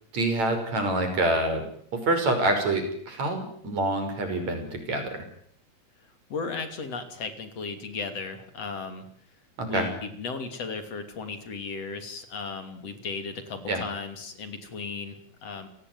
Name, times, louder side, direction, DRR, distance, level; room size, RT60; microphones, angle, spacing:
voice 1, 0.1-1.7 1.9-5.2 9.6-9.9 13.7-13.8, right 2 dB, 65° right, 6 dB, 7.0 m, -26 dB
voice 2, 6.3-9.1 9.7-15.7, left 4 dB, 60° left, 9 dB, 4.0 m, -35 dB
29.0 x 18.5 x 9.5 m, 0.63 s
omnidirectional pair, 3.3 m